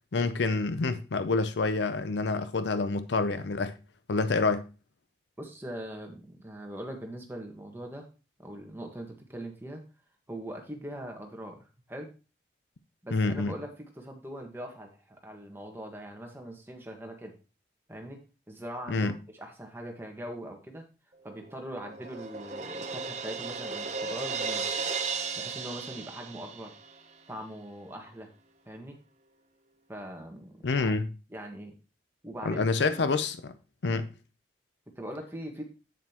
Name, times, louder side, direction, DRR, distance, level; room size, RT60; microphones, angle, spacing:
voice 1, 0.1-3.7 4.1-4.7 13.1-13.6 18.9-19.1 30.6-31.1 32.4-33.5 33.8-34.1, left 3 dB, 75° left, 0.6 m, -27 dB
voice 2, 5.4-8.1 8.4-9.8 10.3-11.6 11.9-12.1 13.0-17.3 17.9-18.2 18.5-20.8 21.2-24.7 25.3-26.7 27.3-28.3 28.6-29.0 29.9-30.9 31.3-31.8 32.2-32.6 32.9-33.1 33.9-34.0 35.0-35.6, right 1 dB, 15° right, 1.4 m, -41 dB
Crash cymbal, 21.3-27.0, right 5 dB, 40° right, 0.7 m, -35 dB
8.1 x 7.3 x 2.9 m
head